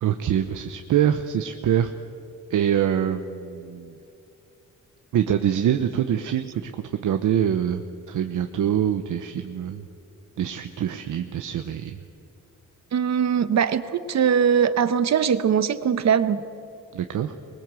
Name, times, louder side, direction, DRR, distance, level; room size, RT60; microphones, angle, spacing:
voice 1, 0.0-1.9 2.5-3.9 5.1-9.9 10.4-12.0 16.9-17.4, right 9 dB, 80° right, 7 dB, 0.9 m, -24 dB
voice 2, 5.5-6.1 12.9-16.4, right 7 dB, 60° right, 12 dB, 1.1 m, -22 dB
23.5 x 21.0 x 7.7 m, 2.6 s
cardioid pair, 125°, 30 cm